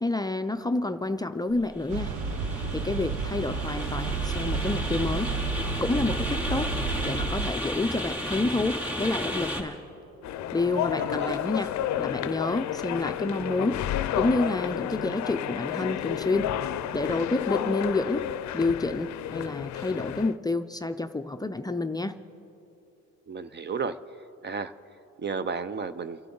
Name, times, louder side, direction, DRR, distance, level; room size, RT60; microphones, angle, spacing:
voice 1, 0.0-2.1 2.7-5.3 5.8-6.7 7.0-9.8 10.5-13.8 14.1-16.5 16.9-18.3 18.5-22.2, left 2 dB, 15° left, 7 dB, 0.5 m, -29 dB
sound 1, 1.6-9.6, left 1 dB, 5° right, 3.3 m, -34 dB
sound 2, 1.9-7.5, right 4 dB, 75° right, 0.9 m, -31 dB
sound 3, 10.2-20.4, left 11 dB, 65° left, 0.5 m, -31 dB
voice 2, 11.0-11.4 23.3-24.0 24.4-24.7 25.2-26.2, right 5 dB, 35° right, 13 dB, 0.6 m, -32 dB
28.0 x 11.5 x 3.9 m, 2.9 s
cardioid pair, 90°, 30 cm